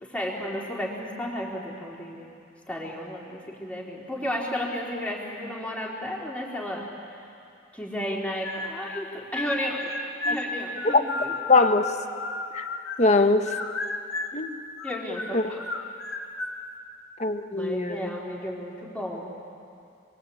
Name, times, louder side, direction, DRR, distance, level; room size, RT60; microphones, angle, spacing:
voice 1, 0.0-2.3 2.7-6.9 7.7-9.9 10.2-11.3 14.8-15.6 17.5-19.4, equal, 5° left, -3 dB, 3.9 m, -33 dB
sound 1, 8.4-9.0 9.3-13.2 13.5-14.4 14.8-16.6, left 3 dB, 80° left, 2.0 m, -33 dB
voice 2, 11.5-11.8 12.5-12.7 13.0-13.5 14.3-14.6 15.3-15.5 17.2-18.1, left 3 dB, 35° left, 7 dB, 1.3 m, -21 dB
29.0 x 22.0 x 8.6 m, 2.5 s
head